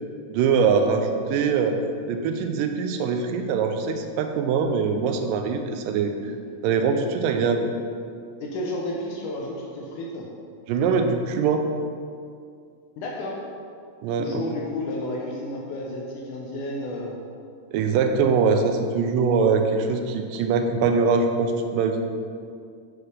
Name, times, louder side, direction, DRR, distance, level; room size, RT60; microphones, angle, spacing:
voice 1, 0.3-1.8 2.1-6.1 6.6-7.7 10.7-11.6 14.0-14.4 17.7-22.0, right 5 dB, 90° right, 5 dB, 2.2 m, -22 dB
voice 2, 8.4-10.3 13.0-13.4 14.2-17.2, left 1 dB, 75° left, -2 dB, 2.2 m, -32 dB
7.3 x 4.9 x 6.3 m, 2.3 s
omnidirectional pair, 3.8 m